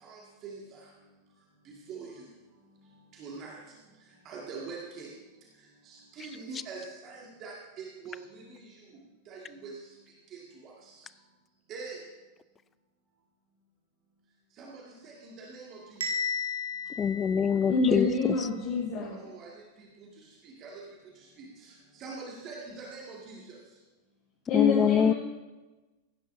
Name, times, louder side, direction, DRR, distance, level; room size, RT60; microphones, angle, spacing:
voice 1, 0.0-0.8 1.9-2.1 3.2-3.6 4.3-5.1 5.9-8.6 9.3-9.7 10.3-10.7 11.7-12.0 14.6-14.7 15.0-16.0 19.2-19.5 20.6-20.8 21.4-21.7 22.0-23.4, right 4 dB, 35° right, -3 dB, 1.9 m, -43 dB
Bell, 16.0-18.0, left 4 dB, 65° right, 1.2 m, -34 dB
voice 2, 17.0-18.1 24.5-25.1, left 7 dB, 20° left, 17 dB, 0.4 m, -24 dB
voice 3, 17.7-19.2 24.5-25.1, left 4 dB, 40° left, -5 dB, 2.1 m, -26 dB
17.0 x 10.0 x 2.7 m, 1.2 s
figure-of-eight pair, 90°, 0 cm